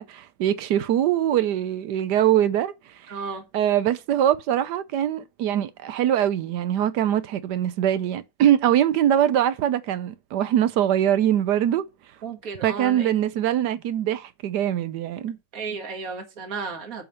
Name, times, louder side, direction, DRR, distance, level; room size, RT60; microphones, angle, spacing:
voice 1, 0.0-3.1 3.5-11.8 12.6-15.4, right 11 dB, 75° right, 1.2 m, -23 dB
voice 2, 3.1-3.5 12.2-13.2 15.5-17.0, right 5 dB, 50° right, 2.2 m, -33 dB
7.5 x 5.0 x 6.7 m
omnidirectional pair, 1.9 m